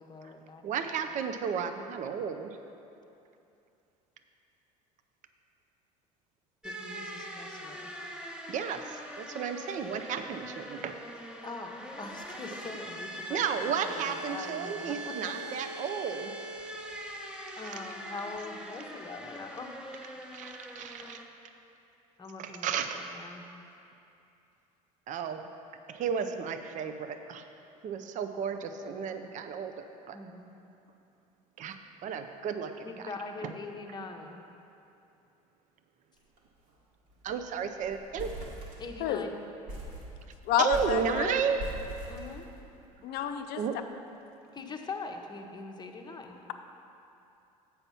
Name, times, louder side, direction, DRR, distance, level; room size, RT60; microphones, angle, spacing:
voice 1, 0.0-0.6 6.6-7.9 11.4-15.8 17.6-19.8 21.0-21.1 22.2-23.5 30.1-30.6 32.8-34.4 38.8-39.4 42.1-42.5 44.5-46.4, left 3 dB, 20° left, 3 dB, 0.9 m, -43 dB
voice 2, 0.6-2.6 8.5-11.0 13.3-16.3 20.3-21.2 22.4-23.0 25.1-25.4 25.9-27.5 27.8-30.2 31.6-32.8 33.4-33.5 37.2-38.3 40.6-41.6 43.6-43.7, right 7 dB, 40° right, 8 dB, 0.5 m, -33 dB
sound 1, 6.6-21.2, right 1 dB, 5° right, 1.0 m, -42 dB
sound 2, 36.2-36.4 36.7-36.8 37.1-37.5 37.8-39.2 39.7-43.0, right 1 dB, 65° right, 1.9 m, -42 dB
voice 3, 40.5-41.3 43.0-43.6, left 9 dB, 55° left, 7 dB, 0.6 m, -29 dB
7.9 x 5.6 x 5.6 m, 2.7 s
hypercardioid pair, 70°, 19 cm